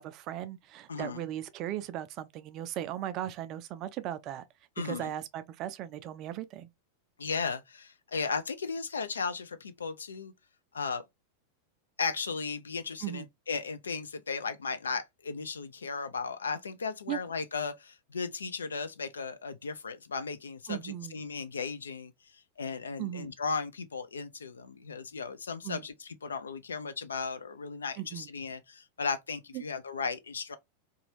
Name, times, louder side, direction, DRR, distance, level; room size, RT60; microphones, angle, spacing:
voice 1, 0.0-4.4 4.8-6.7 13.0-13.3 17.1-17.2 20.7-21.2 23.0-23.3 25.6-25.8 28.0-28.3 29.5-29.6, right 12 dB, 40° right, 0.3 m, -37 dB
voice 2, 0.9-1.2 4.8-5.1 7.2-10.3 10.7-11.0 12.0-30.6, left 5 dB, 70° left, 0.4 m, -36 dB
2.6 x 2.3 x 2.8 m
figure-of-eight pair, 90°, 0 cm